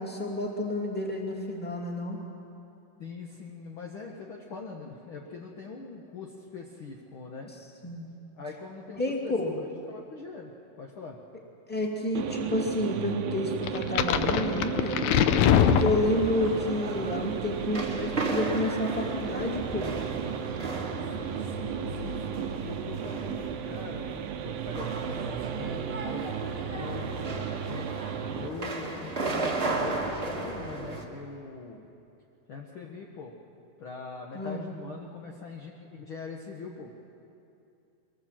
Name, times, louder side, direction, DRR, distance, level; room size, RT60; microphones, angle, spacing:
voice 1, 0.0-2.2 7.8-8.1 9.0-9.5 11.7-15.0 15.5-19.9 34.3-34.7, left 1 dB, 5° left, -1 dB, 1.7 m, -30 dB
voice 2, 3.0-7.5 8.3-9.3 9.9-10.5 10.8-11.2 21.4-24.1 24.4-27.8 28.3-31.9 32.5-33.3 33.8-36.9, left 4 dB, 70° left, -1 dB, 1.2 m, -42 dB
sound 1, 12.2-28.5, right 9 dB, 80° right, 2.6 m, -35 dB
sound 2, 13.7-16.5, left 9 dB, 90° left, 1.6 m, -23 dB
sound 3, 15.4-31.0, right 2 dB, 30° right, 1.1 m, -35 dB
23.5 x 19.5 x 7.5 m, 2.7 s
omnidirectional pair, 4.3 m